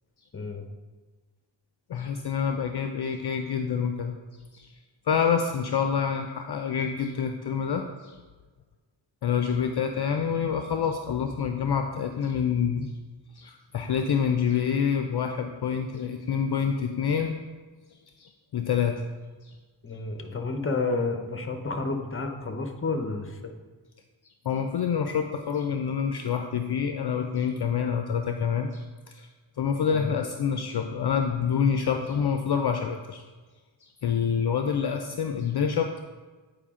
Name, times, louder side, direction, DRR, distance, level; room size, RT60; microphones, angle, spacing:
voice 1, 0.3-0.7 19.8-23.4 29.9-30.1, left 3 dB, 30° left, 5 dB, 0.8 m, -30 dB
voice 2, 1.9-4.2 4.5-4.7 5.1-8.2 9.2-12.9 13.3-17.3 18.2-19.0 19.4-19.5 24.5-29.3 29.6-33.2 33.8-36.0, left 7 dB, 55° left, 5 dB, 0.5 m, -27 dB
8.7 x 4.9 x 3.7 m, 1.3 s
wide cardioid pair, 85°, 46 cm